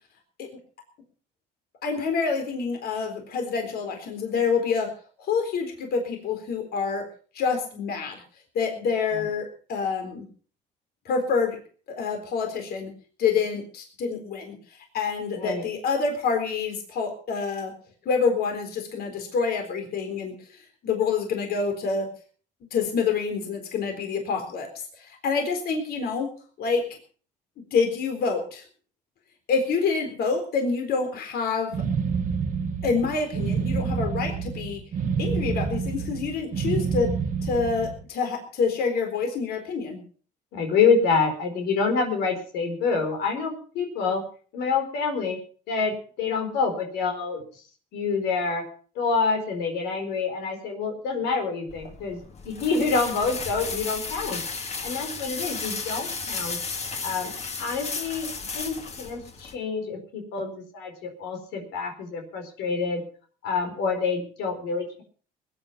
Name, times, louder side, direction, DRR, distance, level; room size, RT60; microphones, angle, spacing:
voice 1, 1.8-4.9 5.2-7.0 7.3-8.2 8.5-10.3 11.1-11.6 11.9-12.9 13.2-14.6 14.9-17.7 18.1-20.3 20.8-22.1 22.7-24.7 25.0-26.3 26.6-27.0 27.7-28.6 29.5-31.8 32.8-34.8 35.2-37.1 37.4-40.0, left 5 dB, 65° left, 5 dB, 4.0 m, -27 dB
sound 1, 31.7-38.0, right 6 dB, 50° right, 1.5 m, -28 dB
voice 2, 40.5-44.2 44.5-45.4 45.7-47.4 47.9-48.7 48.9-52.2 52.4-54.4 54.8-56.6 57.0-57.3 57.6-63.0 63.4-65.0, left 4 dB, 90° left, 4 dB, 4.5 m, -27 dB
sound 2, 51.7-59.5, left 4 dB, 40° left, 2.8 m, -34 dB
20.5 x 10.0 x 5.8 m, 0.42 s
cardioid pair, 110°, 17 cm